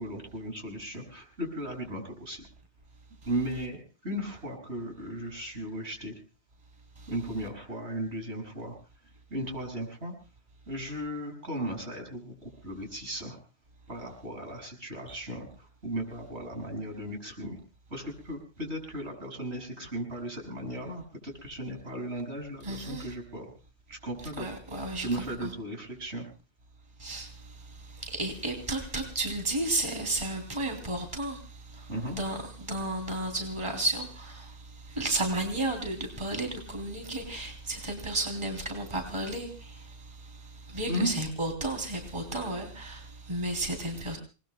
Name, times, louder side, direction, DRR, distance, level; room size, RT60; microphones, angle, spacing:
voice 1, 0.0-2.4 3.3-3.8 4.0-6.2 7.1-8.8 9.3-10.1 10.7-13.4 13.9-17.6 17.9-23.5 23.9-24.5 25.0-26.3 31.9-32.2 40.9-41.1, right 1 dB, 75° right, 6.9 m, -36 dB
voice 2, 22.6-23.1 24.4-25.5 27.0-27.3 28.0-31.4 31.8-31.9 32.1-34.5 34.9-39.8 40.7-44.2, right 2 dB, 25° right, 3.2 m, -32 dB
28.5 x 20.5 x 2.2 m
omnidirectional pair, 1.2 m